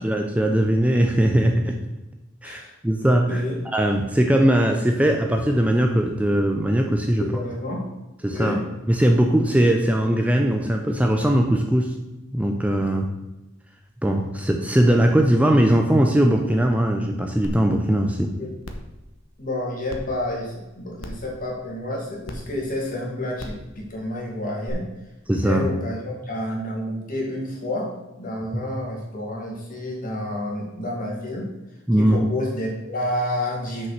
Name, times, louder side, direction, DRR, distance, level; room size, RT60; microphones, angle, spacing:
voice 1, 0.0-1.8 2.4-7.3 8.2-8.6 8.9-11.9 12.3-13.1 14.0-18.3 25.3-25.7 28.5-28.6 31.9-32.2, right 1 dB, 5° right, 3 dB, 0.5 m, -20 dB
voice 2, 3.2-3.6 7.2-7.8 8.3-8.6 18.4-18.5 19.4-24.9 25.4-27.9 28.2-31.5 32.0-33.9, left 1 dB, 45° left, -2 dB, 2.3 m, -29 dB
sound 1, 17.4-17.5 18.0-18.1 18.6-18.9 19.9-20.0 21.0-21.3 22.2-22.4 23.4-23.6 24.7-24.8, left 1 dB, 90° left, 1.0 m, -35 dB
6.3 x 5.5 x 6.6 m, 1.0 s
head